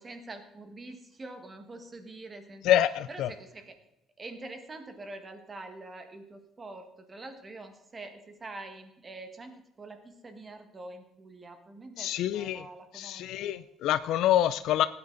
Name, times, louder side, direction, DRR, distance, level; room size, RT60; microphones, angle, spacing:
voice 1, 0.0-2.6 3.1-3.7 4.2-13.6, right 2 dB, 20° right, 7 dB, 1.5 m, -45 dB
voice 2, 2.6-3.3 12.0-12.6 12.9-14.8, left 12 dB, 70° left, 14 dB, 0.4 m, -26 dB
18.0 x 9.6 x 3.9 m, 0.88 s
cardioid pair, 165°, 0 cm